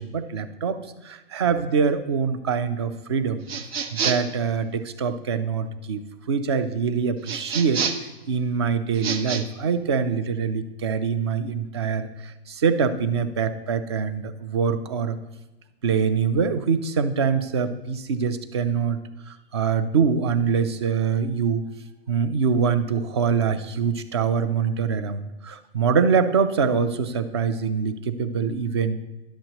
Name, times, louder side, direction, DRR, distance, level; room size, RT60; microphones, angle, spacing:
voice 1, 0.0-3.4 3.9-15.2 15.8-19.0 19.3-21.6 22.1-29.0, right 6 dB, 25° right, 12 dB, 0.4 m, -24 dB
sound 1, 3.5-4.4 7.2-8.1 8.9-9.4, right 6 dB, 70° right, 1.1 m, -28 dB
11.0 x 7.7 x 2.9 m, 1.1 s
hypercardioid pair, 160°, 32 cm